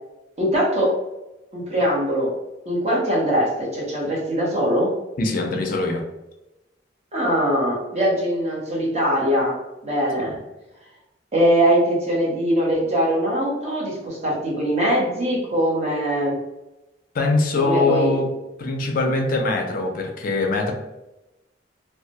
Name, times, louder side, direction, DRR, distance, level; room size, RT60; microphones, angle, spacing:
voice 1, 0.4-0.9 1.5-2.3 2.7-4.9 7.1-9.5 9.8-10.4 11.3-16.4 17.6-18.1, equal, 35° right, -3 dB, 0.7 m, -21 dB
voice 2, 5.2-6.0 17.1-18.3 18.6-20.7, left 3 dB, 50° left, 2 dB, 0.3 m, -22 dB
2.2 x 2.0 x 2.7 m, 0.97 s
head